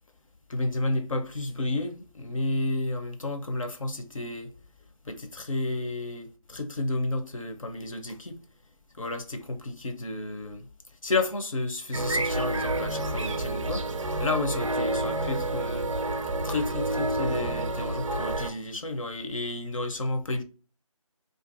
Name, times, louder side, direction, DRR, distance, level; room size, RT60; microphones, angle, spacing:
voice 1, 0.5-4.5 5.1-8.4 9.0-10.7 11.0-15.9 16.4-20.4, left 2 dB, 60° left, 0.6 m, -31 dB
sound 1, 11.9-18.5, right 2 dB, 60° right, 0.4 m, -29 dB
2.5 x 2.2 x 2.5 m
figure-of-eight pair, 170°, 19 cm